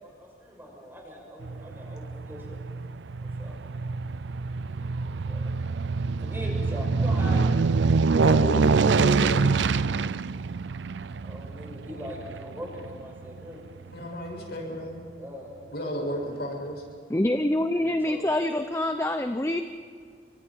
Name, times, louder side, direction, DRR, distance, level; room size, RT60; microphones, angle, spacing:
voice 1, 0.0-2.7 3.2-3.6 5.1-5.5 6.2-8.4 11.2-13.6 15.0-16.5 17.6-18.3, equal, 15° right, -2 dB, 6.3 m, -42 dB
Aircraft, 1.4-13.9 14.4-14.5, right 4 dB, 90° right, 0.5 m, -26 dB
voice 2, 8.2-9.4 13.9-15.0 15.7-16.8, equal, 65° left, 0 dB, 6.9 m, -32 dB
voice 3, 17.1-19.6, left 1 dB, 15° left, 7 dB, 0.7 m, -25 dB
29.5 x 25.0 x 4.7 m, 2.2 s
head